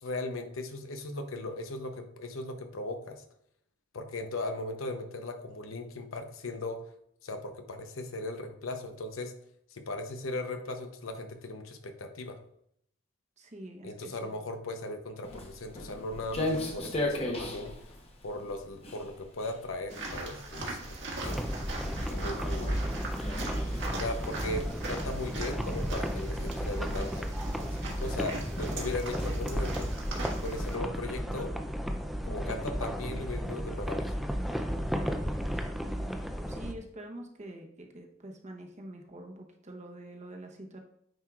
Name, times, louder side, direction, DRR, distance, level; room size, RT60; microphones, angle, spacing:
voice 1, 0.0-3.2 3.9-6.8 7.2-9.3 9.7-12.4 13.8-18.0 18.2-21.0 21.2-21.5 22.1-22.9 23.9-27.3 27.5-29.9 30.4-31.5 32.2-34.1, left 2 dB, 80° left, 6 dB, 0.8 m, -38 dB
voice 2, 13.4-14.3 35.8-40.8, right 1 dB, 35° right, 2 dB, 1.0 m, -46 dB
Walk footsteps, 15.2-24.7, left 1 dB, 30° left, 0.9 m, -38 dB
sound 1, 19.9-30.8, right 2 dB, 60° right, 1.7 m, -40 dB
sound 2, 21.2-36.7, equal, ahead, 0.5 m, -33 dB
9.1 x 4.6 x 2.4 m, 0.70 s
head